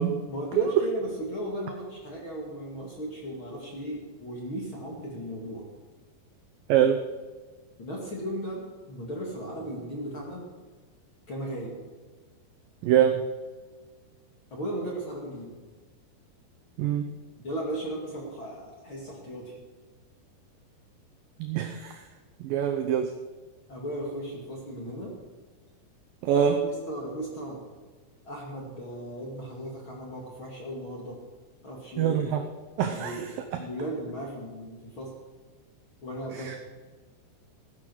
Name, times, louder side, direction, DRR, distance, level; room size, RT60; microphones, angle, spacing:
voice 1, 0.3-5.7 7.8-10.5 11.3-11.8 14.5-15.5 17.4-19.6 23.7-25.2 26.3-27.6 28.2-31.2 31.6-32.2 32.9-35.1 36.0-36.6, right 1 dB, 40° left, -2 dB, 2.2 m, -36 dB
voice 2, 12.8-13.2 16.8-17.0 21.4-21.9 22.5-23.1 26.2-26.6 32.0-32.4 32.8-33.1, right 9 dB, 85° right, 6 dB, 2.0 m, -23 dB
15.5 x 9.8 x 6.3 m, 1.4 s
omnidirectional pair, 5.1 m